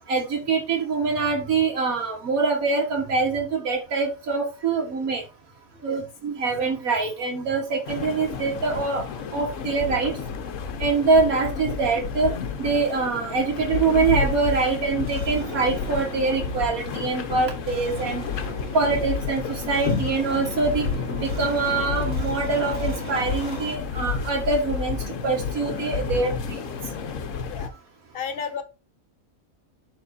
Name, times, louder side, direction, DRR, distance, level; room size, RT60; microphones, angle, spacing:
voice 1, 0.1-5.2 5.8-9.0 9.3-10.1 10.8-12.3 12.6-18.2 18.7-20.9 21.2-25.0 25.2-26.6, right 4 dB, 85° right, 0 dB, 1.9 m, -24 dB
sound 1, 7.8-27.7, left 6 dB, 65° left, 1.1 m, -30 dB
sound 2, 14.7-23.8, right 1 dB, 50° right, 2.3 m, -38 dB
voice 2, 28.1-28.6, left 6 dB, 45° left, 8 dB, 1.1 m, -32 dB
11.0 x 3.8 x 2.6 m, 0.28 s
omnidirectional pair, 1.4 m